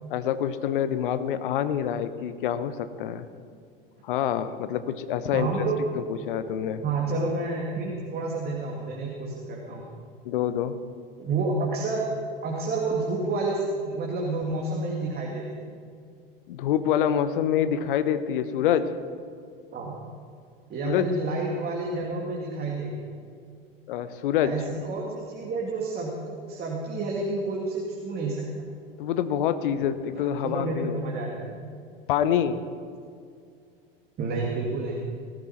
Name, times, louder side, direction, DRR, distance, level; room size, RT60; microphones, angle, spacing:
voice 1, 0.1-3.3 4.0-5.5 6.1-6.8 10.2-10.8 16.5-18.9 20.8-21.1 23.9-24.5 29.0-31.0 32.1-32.6, left 9 dB, 60° left, 12 dB, 1.0 m, -26 dB
voice 2, 5.3-5.8 6.8-9.8 11.2-12.0 12.4-15.7 19.7-19.9 20.7-23.0 24.4-28.7 30.1-31.5 34.2-35.0, right 3 dB, 35° right, -2 dB, 2.5 m, -29 dB
18.5 x 13.5 x 4.4 m, 2.3 s
figure-of-eight pair, 80°, 29 cm